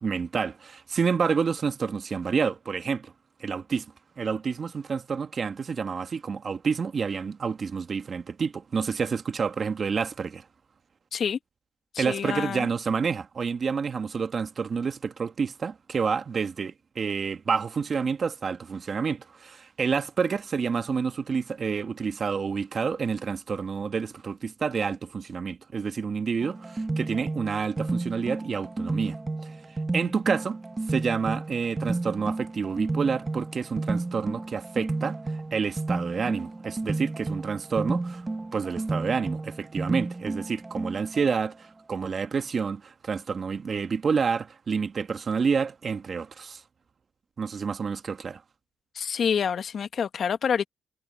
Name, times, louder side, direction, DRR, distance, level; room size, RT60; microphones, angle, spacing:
voice 1, 0.0-3.1 3.4-3.9 4.2-10.4 12.0-29.2 29.4-29.5 29.9-30.6 30.9-38.2 38.5-46.6 47.4-48.4, right 5 dB, 45° right, 1.4 m, -29 dB
voice 2, 11.9-12.7 48.9-50.6, left 7 dB, 55° left, 1.4 m, -27 dB
sound 1, 26.4-41.3, right 2 dB, 20° right, 1.1 m, -32 dB
cardioid pair, 90°, 0 cm